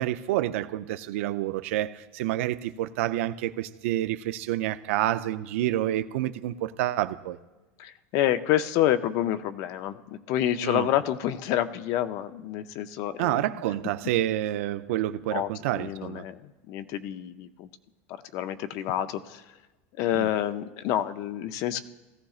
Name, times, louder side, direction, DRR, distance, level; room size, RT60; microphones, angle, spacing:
voice 1, 0.0-7.4 10.6-10.9 13.2-16.2 20.1-20.3, right 14 dB, 75° right, 0.5 m, -28 dB
voice 2, 7.8-13.4 15.3-17.7 18.3-19.4 20.0-21.8, left 12 dB, 50° left, 0.5 m, -28 dB
17.0 x 14.5 x 2.4 m
supercardioid pair, 145°, 7 cm